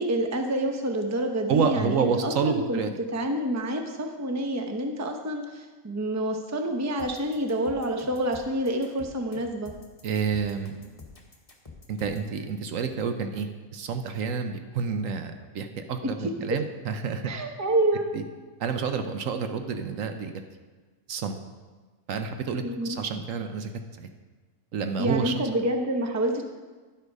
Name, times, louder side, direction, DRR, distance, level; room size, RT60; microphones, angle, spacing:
voice 1, 0.0-2.8 3.1-9.7 16.0-16.6 17.2-18.1 22.6-23.0 25.0-26.4, right 1 dB, 15° right, 4 dB, 0.7 m, -28 dB
voice 2, 1.5-2.9 10.0-10.7 11.9-17.2 18.1-18.2 18.6-20.3 21.1-21.4 22.1-23.7 24.0-24.1 24.7-25.3, right 5 dB, 70° right, 7 dB, 1.1 m, -29 dB
sound 1, 7.0-12.3, left 3 dB, 25° left, 1.4 m, -47 dB
10.5 x 8.2 x 5.3 m, 1.3 s
omnidirectional pair, 1.5 m